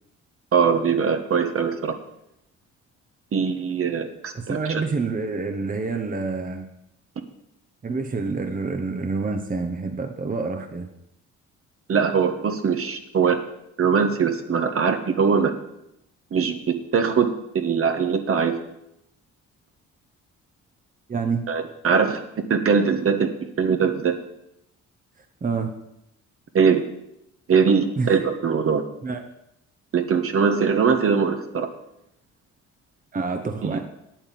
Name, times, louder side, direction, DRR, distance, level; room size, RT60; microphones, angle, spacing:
voice 1, 0.5-1.9 3.3-4.8 11.9-13.4 13.8-15.5 16.3-18.5 21.5-23.3 23.6-24.1 26.5-26.8 27.5-28.8 29.9-31.7 33.7-33.8, right 6 dB, 50° right, 6 dB, 1.4 m, -21 dB
voice 2, 4.3-6.6 7.8-10.9 21.1-21.4 25.4-25.7 28.0-28.1 29.0-29.2 33.1-33.8, right 4 dB, 30° right, 5 dB, 1.1 m, -27 dB
9.1 x 8.8 x 7.6 m, 0.82 s
cardioid pair, 90°, 30 cm